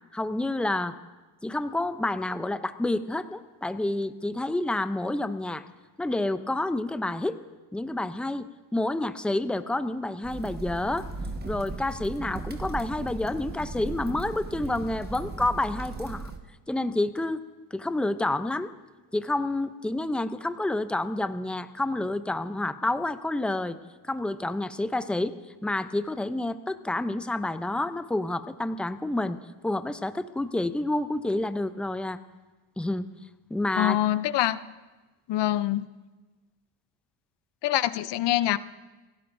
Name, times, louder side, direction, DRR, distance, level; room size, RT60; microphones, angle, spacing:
voice 1, 0.1-1.0 1.4-5.6 6.0-7.4 7.7-8.4 8.7-11.1 11.4-16.3 16.7-17.4 17.7-18.7 19.1-23.8 24.0-25.3 25.6-29.4 29.6-32.2 32.8-33.1 33.5-34.0, left 2 dB, ahead, 11 dB, 0.5 m, -29 dB
sound 1, 10.2-16.4, right 3 dB, 20° right, 1.4 m, -37 dB
voice 2, 33.8-34.6 35.3-35.9 37.6-38.6, left 13 dB, 55° left, 15 dB, 0.7 m, -24 dB
29.0 x 16.0 x 2.6 m, 1.2 s
cardioid pair, 100°, 49 cm